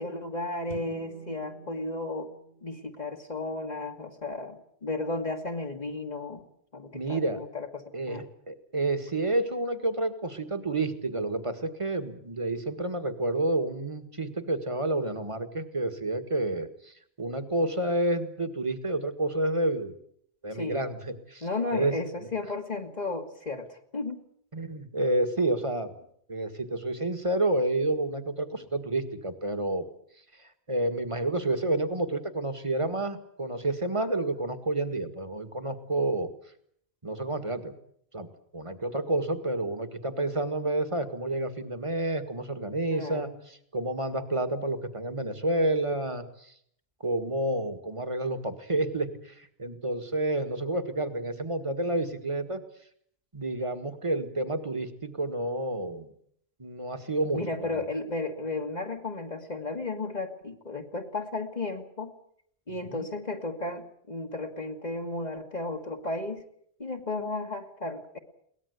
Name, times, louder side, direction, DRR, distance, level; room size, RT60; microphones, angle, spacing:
voice 1, 0.0-2.3 2.6-6.4 6.7-8.2 20.5-20.8 21.4-24.2 42.9-43.3 57.3-62.1 62.7-66.4 66.8-68.2, left 2 dB, 45° left, 2 dB, 1.9 m, -34 dB
sound 1, 0.7-4.3, right 1 dB, 60° left, 3.8 m, -48 dB
voice 2, 6.9-7.4 7.9-20.0 20.4-21.5 21.7-22.0 22.2-22.3 24.5-25.9 26.3-29.8 30.7-36.3 37.0-37.7 38.1-38.3 38.5-46.5 47.0-52.6 53.3-56.1 56.6-57.9 62.8-63.1, right 2 dB, 30° right, 9 dB, 1.9 m, -29 dB
22.0 x 19.0 x 8.2 m, 0.66 s
omnidirectional pair, 1.0 m